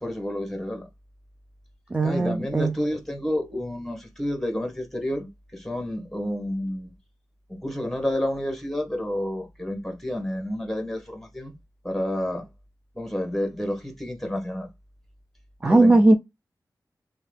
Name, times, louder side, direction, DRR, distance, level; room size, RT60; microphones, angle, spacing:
voice 1, 0.0-0.8 2.0-6.9 7.5-11.5 11.8-12.5 12.9-14.7 15.6-16.0, left 1 dB, 5° left, 1.1 m, -30 dB
voice 2, 1.9-2.7 15.6-16.2, right 2 dB, 20° right, 0.4 m, -18 dB
2.7 x 2.2 x 3.2 m
wide cardioid pair, 85°, 7 cm